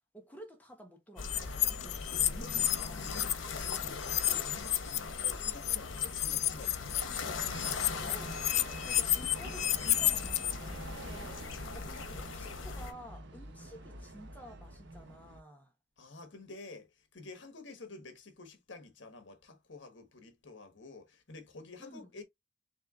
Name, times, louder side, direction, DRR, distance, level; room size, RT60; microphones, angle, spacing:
voice 1, 0.1-3.2 8.1-15.7 21.8-22.2, equal, 10° left, 1.2 m, -52 dB
sound 1, 1.2-12.9, left 4 dB, 80° left, 1.0 m, -40 dB
sound 2, 1.3-3.3 3.6-10.5, left 13 dB, 35° left, 0.3 m, -31 dB
voice 2, 3.1-7.0 16.0-22.2, left 3 dB, 65° left, 1.3 m, -50 dB
sound 3, 7.5-15.4, right 2 dB, 60° right, 0.9 m, -48 dB
4.3 x 2.8 x 3.6 m
head